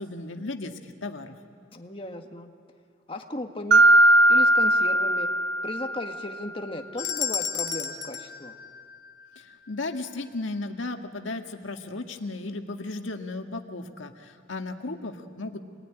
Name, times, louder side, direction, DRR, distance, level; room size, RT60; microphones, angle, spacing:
voice 1, 0.0-1.4 9.3-15.6, left 2 dB, 85° left, 5 dB, 1.7 m, -35 dB
voice 2, 1.7-2.5 3.1-3.8 4.3-5.3 5.6-8.5, left 1 dB, 30° left, 4 dB, 1.7 m, -36 dB
Mallet percussion, 3.7-6.3, right 1 dB, 60° right, 0.8 m, -19 dB
sound 1, 7.0-9.4, left 8 dB, 65° left, 1.4 m, -32 dB
26.5 x 20.0 x 10.0 m, 2.3 s
head